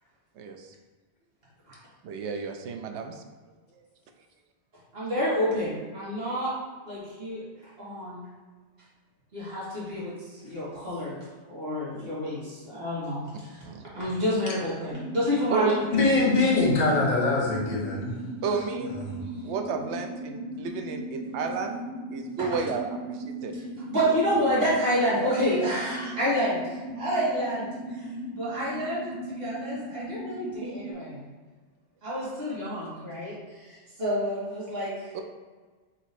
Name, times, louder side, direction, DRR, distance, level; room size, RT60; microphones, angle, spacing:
voice 1, 0.4-0.7 2.0-3.2 13.6-13.8 15.5-15.7 18.4-19.0 19.4-21.8 22.1-23.5 24.0-24.1 35.1-35.2, right 5 dB, 80° right, 5 dB, 0.9 m, -32 dB
voice 2, 4.9-6.5 6.8-7.4 7.8-8.3 9.3-13.7 13.9-16.2 22.4-22.6 23.5-23.6 23.9-26.6 27.0-31.2 32.0-35.1, equal, 55° right, -8 dB, 1.9 m, -29 dB
sound 1, 14.9-30.9, right 1 dB, 15° right, 1.4 m, -38 dB
voice 3, 15.9-18.2 19.0-19.2, left 3 dB, 40° left, -3 dB, 1.0 m, -23 dB
4.1 x 2.9 x 4.1 m, 1.4 s
omnidirectional pair, 1.2 m